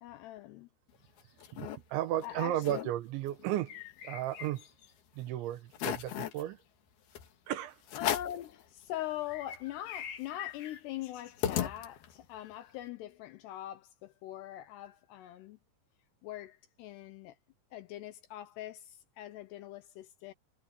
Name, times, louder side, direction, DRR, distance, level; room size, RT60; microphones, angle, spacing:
voice 1, 0.0-0.7 2.2-2.9 8.0-15.6 16.2-17.4 17.7-20.3, left 13 dB, 80° left, 2.5 m, -42 dB
sound 1, 0.9-1.8 2.2-2.3 2.5-2.9 3.3-4.9 5.3-5.4 5.7-6.4 7.1-7.3 7.9-8.5 8.9-9.0 9.2-12.3, left 10 dB, 60° left, 3.4 m, -37 dB
voice 2, 1.5-4.7 5.2-6.6 7.5-7.8, right 13 dB, 75° right, 3.3 m, -34 dB
omnidirectional pair, 5.6 m